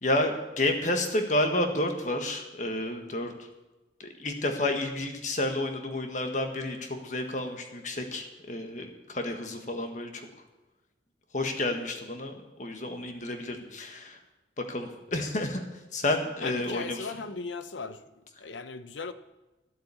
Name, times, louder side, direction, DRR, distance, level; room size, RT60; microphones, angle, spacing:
voice 1, 0.0-3.5 4.0-10.2 11.3-14.2 14.6-15.6 15.9-17.1, left 1 dB, 40° left, 5 dB, 1.5 m, -30 dB
voice 2, 16.4-18.0 18.4-19.1, left 4 dB, 80° left, 12 dB, 0.8 m, -37 dB
13.0 x 7.7 x 8.4 m, 1.1 s
head